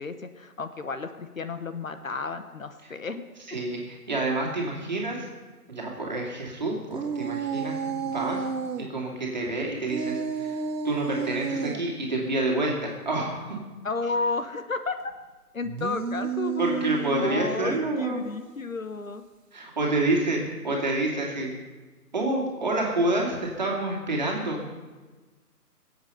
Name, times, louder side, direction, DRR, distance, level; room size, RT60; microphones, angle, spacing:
voice 1, 0.0-3.2 13.8-15.0 15.5-16.9 17.2-19.2, left 3 dB, 55° left, 9 dB, 1.0 m, -32 dB
voice 2, 3.5-5.3 5.7-8.4 8.8-10.6 10.8-13.6 16.6-18.2 19.5-21.5 22.1-24.6, right 2 dB, 30° right, -2 dB, 2.3 m, -28 dB
sound 1, 6.9-8.9 9.9-11.8 15.6-17.9, right 6 dB, 80° right, 1.1 m, -31 dB
22.0 x 8.1 x 5.6 m, 1.3 s
hypercardioid pair, 180°, 47 cm